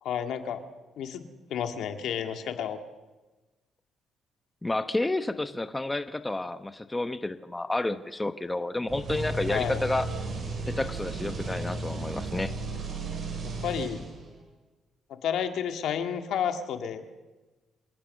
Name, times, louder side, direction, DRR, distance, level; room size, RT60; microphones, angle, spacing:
voice 1, 0.0-0.6 1.0-1.2 1.5-2.8 9.5-9.8 13.6-14.0 15.1-17.0, left 8 dB, 75° left, 7 dB, 1.9 m, -31 dB
voice 2, 4.6-10.1 10.7-12.5, left 2 dB, 15° left, 10 dB, 1.0 m, -30 dB
sound 1, 8.9-14.4, right 3 dB, 55° right, 7.0 m, -34 dB
26.5 x 17.5 x 6.5 m, 1.2 s
cardioid pair, 90°, 0 cm